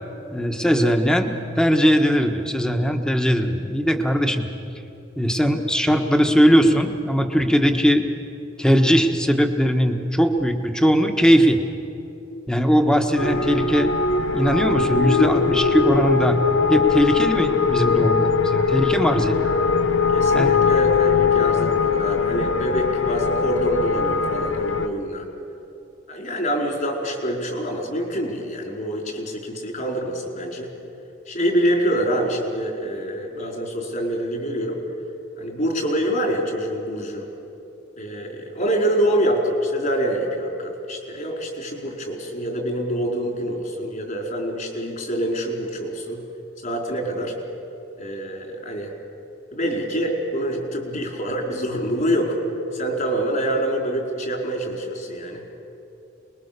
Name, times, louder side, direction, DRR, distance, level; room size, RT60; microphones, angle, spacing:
voice 1, 0.3-4.5 5.2-8.0 8.6-11.6 12.5-13.9 14.3-16.4 16.7-19.5 20.3-20.5, equal, 5° left, 5 dB, 1.4 m, -19 dB
sound 1, 13.2-24.9, left 5 dB, 85° left, 1.1 m, -21 dB
voice 2, 20.1-25.3 26.1-30.7 31.3-34.8 35.4-37.3 38.0-46.2 46.6-47.3 48.0-48.9 49.5-52.4 52.7-55.4, equal, 45° left, 1 dB, 4.5 m, -25 dB
28.0 x 21.0 x 6.9 m, 2.8 s
head